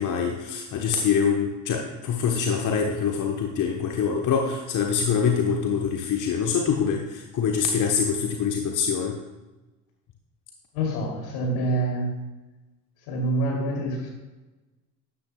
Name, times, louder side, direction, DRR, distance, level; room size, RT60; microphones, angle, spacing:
voice 1, 0.0-9.2, left 6 dB, 40° left, 2 dB, 1.1 m, -25 dB
voice 2, 10.7-12.2 13.0-14.1, right 1 dB, 65° left, -1 dB, 3.0 m, -26 dB
12.0 x 10.0 x 2.3 m, 1.1 s
figure-of-eight pair, 65°, 50 cm